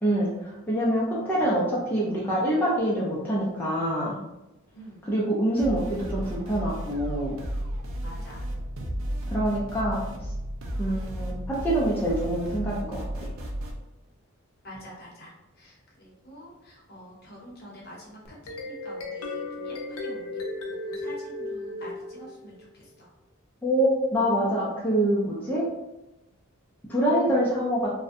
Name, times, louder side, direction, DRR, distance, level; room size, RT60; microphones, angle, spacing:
voice 1, 0.0-4.2 5.0-7.4 9.3-10.0 10.8-13.3 23.6-25.6 26.9-27.9, right 1 dB, 10° left, -7 dB, 0.4 m, -25 dB
voice 2, 4.7-5.1 8.0-8.5 14.6-20.4 20.8-23.1 27.2-27.4, equal, 50° left, -4 dB, 0.8 m, -47 dB
sound 1, 5.6-13.7, equal, 70° right, 0.4 m, -33 dB
sound 2, 18.3-22.6, left 2 dB, 80° left, 0.4 m, -35 dB
2.5 x 2.1 x 2.5 m, 0.97 s
head